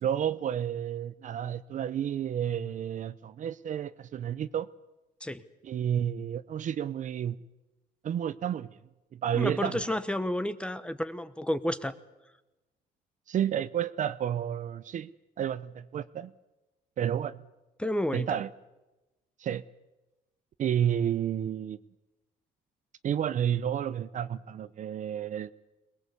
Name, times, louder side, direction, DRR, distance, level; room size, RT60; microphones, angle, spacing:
voice 1, 0.0-4.7 5.6-7.4 8.0-8.8 9.1-9.8 13.3-15.1 15.4-16.3 17.0-17.4 18.1-18.5 19.4-19.6 20.6-21.8 23.0-25.5, right 9 dB, 50° right, 15 dB, 0.7 m, -31 dB
voice 2, 9.3-11.9 17.8-18.3, left 1 dB, 5° left, 13 dB, 1.2 m, -31 dB
22.0 x 20.5 x 8.3 m, 1.0 s
cardioid pair, 110°, 17 cm